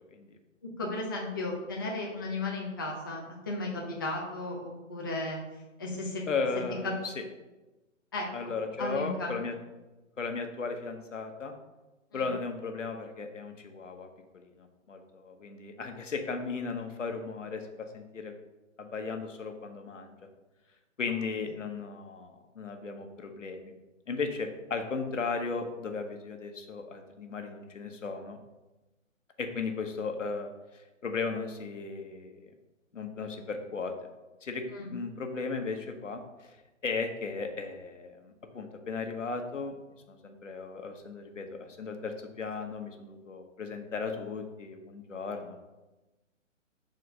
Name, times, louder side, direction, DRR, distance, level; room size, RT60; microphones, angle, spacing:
voice 1, 0.8-6.2 6.8-6.9 8.1-8.2 8.8-9.4 12.1-12.2 34.7-34.9, left 2 dB, 20° left, -2 dB, 0.4 m, -35 dB
voice 2, 6.3-7.1 8.3-9.5 10.2-11.5 12.1-14.1 14.6-18.3 18.8-20.2 21.0-23.7 24.1-28.4 29.4-30.5 31.0-32.5 32.9-33.9 34.4-36.6 36.8-39.7 40.1-45.6, left 4 dB, 65° left, 5 dB, 1.1 m, -36 dB
6.5 x 4.2 x 4.1 m, 1.1 s
figure-of-eight pair, 135°, 39 cm